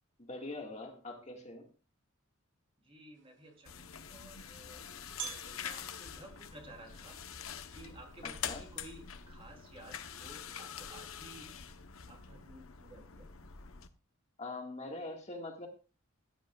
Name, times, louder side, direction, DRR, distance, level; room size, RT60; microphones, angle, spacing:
voice 1, 0.2-1.7 8.2-8.6 14.4-15.7, left 2 dB, 35° left, 2 dB, 1.8 m, -43 dB
voice 2, 2.8-4.8 5.2-7.1 7.7-11.5 12.1-13.3, right 1 dB, 25° right, 1 dB, 3.2 m, -54 dB
sound 1, 3.1-9.8, right 9 dB, 60° right, 1.2 m, -52 dB
sound 2, 3.7-13.9, left 8 dB, 80° left, 0.9 m, -45 dB
15.5 x 10.5 x 2.4 m, 0.33 s
head